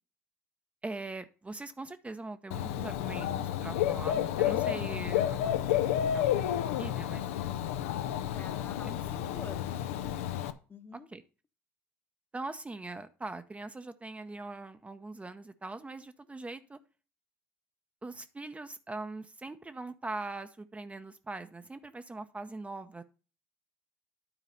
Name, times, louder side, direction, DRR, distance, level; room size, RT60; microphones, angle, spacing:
voice 1, 0.8-7.2 8.8-8.9 10.9-11.2 12.3-16.8 18.0-23.0, right 2 dB, 20° right, 0.7 m, -42 dB
Dog / Bird, 2.5-10.5, left 11 dB, 80° left, 0.5 m, -31 dB
voice 2, 8.3-9.9 10.7-11.1, left 4 dB, 30° left, 1.0 m, -47 dB
9.9 x 4.0 x 5.4 m
hypercardioid pair, 60°, 7 cm